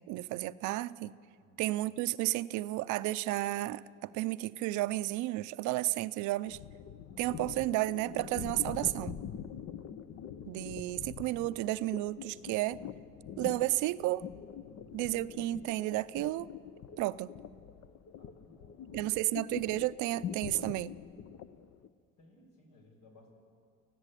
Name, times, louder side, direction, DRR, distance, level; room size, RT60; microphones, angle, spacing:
voice 1, 0.1-1.2 1.6-6.6 7.2-9.2 10.5-12.8 13.4-14.3 14.9-16.5 17.0-17.3 18.9-20.9, right 17 dB, 90° right, 16 dB, 0.6 m, -32 dB
sound 1, 6.5-21.9, left 8 dB, 60° left, 0.9 m, -44 dB
voice 2, 14.6-15.0 18.2-19.0 22.2-23.3, left 2 dB, 80° left, 2 dB, 5.6 m, -61 dB
25.5 x 15.0 x 8.3 m, 2.2 s
cardioid pair, 100°, 29 cm